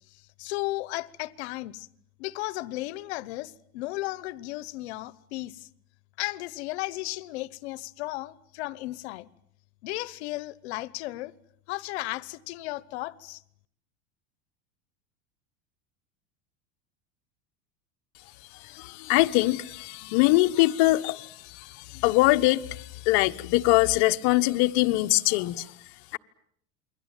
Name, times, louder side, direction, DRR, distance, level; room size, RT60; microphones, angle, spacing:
voice 1, 0.1-1.9 2.2-5.7 6.2-9.3 9.8-11.3 11.7-13.4, left 19 dB, 85° left, 1.2 m, -35 dB
voice 2, 18.5-25.7 26.1-26.2, left 19 dB, 65° left, 1.3 m, -23 dB
28.5 x 23.0 x 9.2 m
supercardioid pair, 140°, 32 cm